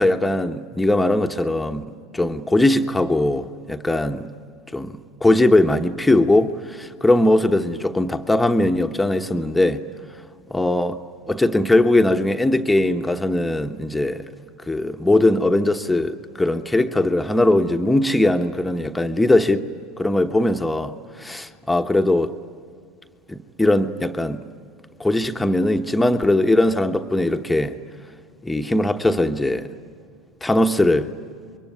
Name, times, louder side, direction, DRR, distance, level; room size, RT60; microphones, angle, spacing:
voice 1, 0.0-1.8 2.1-4.3 4.7-9.8 10.5-11.0 11.3-14.2 14.7-19.6 20.0-22.3 23.3-24.4 25.0-27.8 28.4-29.7 30.4-31.1, left 1 dB, 10° left, 1.2 m, -20 dB
27.0 x 23.0 x 9.4 m
hypercardioid pair, 80°, 0 cm